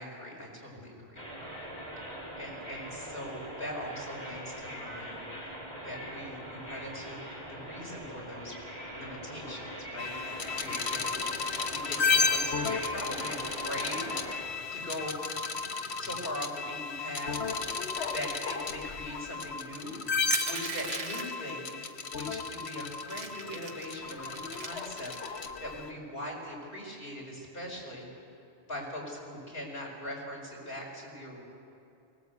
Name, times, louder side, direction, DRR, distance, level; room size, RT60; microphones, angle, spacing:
voice 1, 0.0-1.7 2.4-5.5 5.8-7.2 7.5-8.6 8.9-14.1 14.7-15.2 16.0-17.4 18.1-28.1 28.7-31.4, left 1 dB, 55° left, -2 dB, 5.4 m, -41 dB
sound 1, 1.2-14.4, equal, 35° right, 5.8 m, -42 dB
sound 2, 10.0-25.9, left 4 dB, 70° left, 1.3 m, -33 dB
Crushing, 20.3-21.5 22.3-22.4 22.7-23.9 24.3-25.4, right 3 dB, 70° right, 1.8 m, -36 dB
23.0 x 18.5 x 8.2 m, 2.7 s
omnidirectional pair, 1.1 m